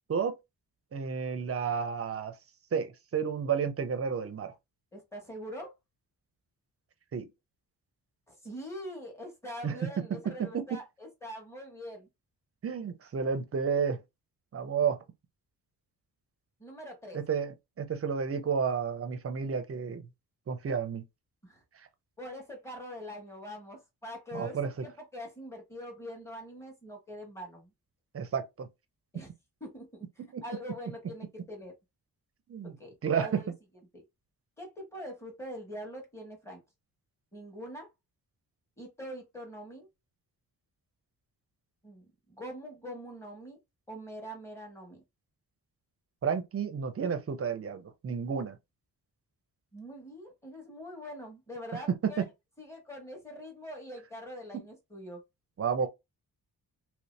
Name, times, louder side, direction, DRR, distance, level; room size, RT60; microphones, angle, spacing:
voice 1, 0.9-2.3 2.7-4.5 7.1-7.3 9.6-9.9 10.4-10.6 12.6-14.0 14.5-15.0 17.1-20.0 20.5-21.0 24.3-24.7 28.1-28.7 30.3-30.4 32.5-32.8 33.0-33.4 46.2-48.6 52.0-52.3 54.5-54.6 55.6-55.9, right 6 dB, 35° right, 0.5 m, -31 dB
voice 2, 4.9-5.7 8.3-12.1 16.6-17.2 21.4-21.6 22.2-27.7 29.1-29.3 29.6-31.7 32.8-33.5 33.9-34.0 34.6-36.6 37.3-37.9 38.8-39.9 41.8-43.6 43.9-45.0 49.7-52.2 52.6-55.2 55.8-55.9, equal, 5° left, 1.1 m, -43 dB
3.0 x 2.7 x 3.2 m
wide cardioid pair, 175°, 39 cm